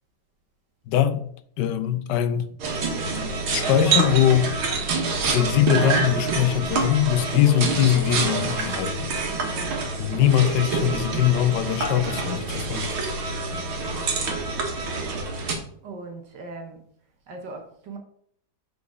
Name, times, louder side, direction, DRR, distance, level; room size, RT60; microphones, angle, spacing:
voice 1, 0.9-1.2 1.6-2.5 3.5-4.5 5.3-9.1 10.0-12.9, left 11 dB, 70° left, 1.1 m, -22 dB
sound 1, 2.6-15.5, right 4 dB, 85° right, 2.2 m, -27 dB
voice 2, 9.5-9.8 13.9-14.4 15.8-16.8 17.3-18.0, right 3 dB, 60° right, 1.7 m, -40 dB
6.8 x 4.7 x 4.8 m
omnidirectional pair, 2.2 m